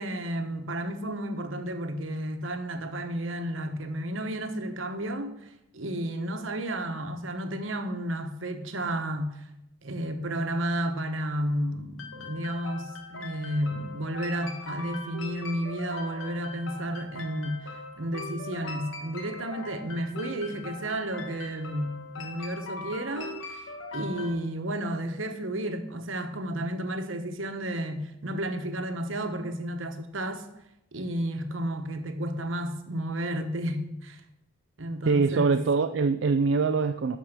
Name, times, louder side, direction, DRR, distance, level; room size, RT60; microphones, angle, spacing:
voice 1, 0.0-9.4 9.8-23.6 23.9-30.5 30.9-34.2 34.8-35.6, right 1 dB, 80° right, 1.1 m, -32 dB
sound 1, 12.0-24.3, left 2 dB, 80° left, 1.7 m, -40 dB
voice 2, 35.1-37.2, right 4 dB, 65° right, 0.4 m, -23 dB
12.0 x 4.8 x 6.7 m
head